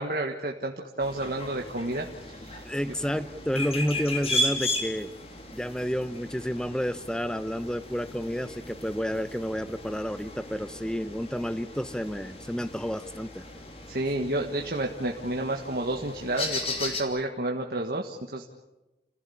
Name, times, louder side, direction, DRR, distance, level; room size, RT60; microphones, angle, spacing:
voice 1, 0.0-2.6 4.5-4.7 13.9-18.5, right 1 dB, 55° right, 1 dB, 1.6 m, -30 dB
sound 1, 1.0-17.0, left 1 dB, 35° left, 2.9 m, -36 dB
voice 2, 2.6-5.1 5.5-13.4, equal, 5° left, 13 dB, 0.8 m, -30 dB
29.5 x 16.0 x 8.6 m, 1.0 s
head